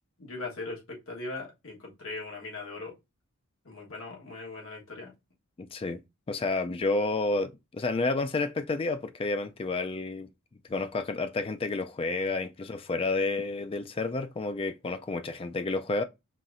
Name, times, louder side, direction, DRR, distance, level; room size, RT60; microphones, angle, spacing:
voice 1, 0.2-2.9 3.6-5.1, left 3 dB, 60° left, 1.4 m, -39 dB
voice 2, 5.6-6.0 6.3-10.3 10.7-16.0, left 3 dB, 25° left, 0.3 m, -30 dB
5.6 x 2.8 x 2.5 m
head